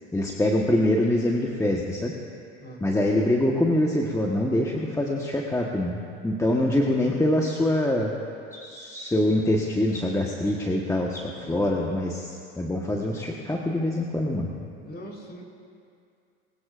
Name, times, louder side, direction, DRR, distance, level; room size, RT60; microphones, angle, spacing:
voice 1, 0.1-2.1 2.8-8.1 8.5-14.5, left 1 dB, 10° left, -1 dB, 1.4 m, -24 dB
voice 2, 2.6-3.0 11.4-11.8 14.8-15.4, equal, 35° left, -1 dB, 4.2 m, -42 dB
21.5 x 19.5 x 2.6 m, 2.4 s
hypercardioid pair, 75°, 30 cm